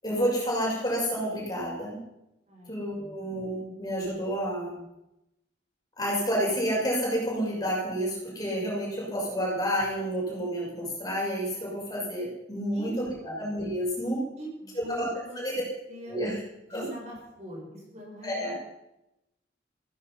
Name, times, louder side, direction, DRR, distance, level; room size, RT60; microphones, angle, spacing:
voice 1, 0.0-2.0 2.7-4.8 6.0-14.2 14.9-15.1 15.4-15.6 16.1-16.4 16.7-16.9 18.2-18.5, equal, 20° left, -4 dB, 6.4 m, -30 dB
voice 2, 2.5-3.3 12.7-13.4 14.4-15.4 15.9-16.2 16.7-18.4, equal, 40° right, -2 dB, 5.9 m, -43 dB
16.0 x 15.0 x 5.7 m, 0.88 s
head